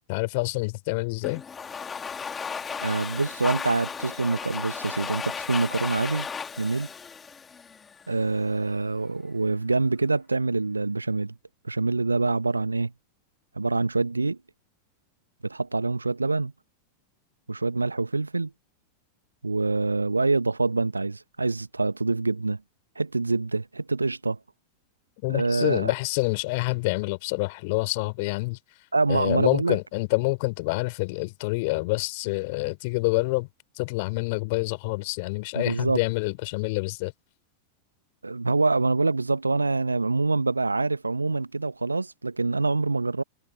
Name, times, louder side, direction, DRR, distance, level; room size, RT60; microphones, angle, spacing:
voice 1, 0.1-1.4 25.2-28.6 29.1-33.5 33.8-37.1, left 26 dB, 50° left, 4.0 m, -27 dB
Domestic sounds home sounds, 1.2-8.1, left 6 dB, 20° left, 2.9 m, -35 dB
voice 2, 2.8-6.3 6.6-6.9 8.1-11.4 11.6-12.9 13.5-14.4 15.4-16.5 17.5-18.5 19.4-22.6 23.0-24.4 25.3-25.9 28.9-29.8 35.5-36.0 38.2-43.2, right 3 dB, 80° right, 1.2 m, -25 dB
figure-of-eight pair, 90°, 0 cm